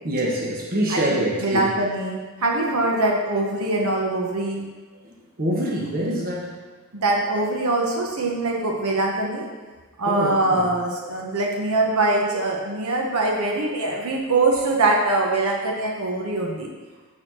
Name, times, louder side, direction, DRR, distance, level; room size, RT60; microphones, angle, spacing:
voice 1, 0.0-1.8 5.0-6.7 10.0-10.7, right 1 dB, 40° right, -2 dB, 1.2 m, -26 dB
voice 2, 0.9-4.7 6.9-9.5 10.0-16.7, right 2 dB, 85° right, 0 dB, 1.2 m, -23 dB
6.6 x 4.2 x 6.3 m, 1.3 s
head